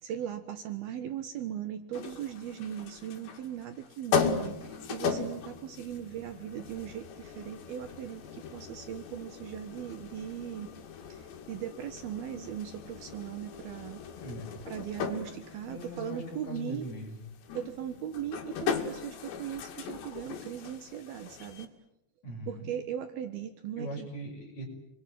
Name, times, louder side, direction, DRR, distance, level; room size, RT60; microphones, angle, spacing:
voice 1, 0.0-10.7 11.1-14.0 14.7-16.9 17.5-21.7 22.5-24.1, right 10 dB, 65° right, 9 dB, 3.0 m, -39 dB
sound 1, 1.9-21.7, left 6 dB, 75° left, 4.7 m, -38 dB
voice 2, 15.7-17.2 22.2-22.7 23.8-24.7, equal, 40° left, 2 dB, 6.9 m, -40 dB
29.5 x 22.0 x 9.3 m, 0.85 s
omnidirectional pair, 5.1 m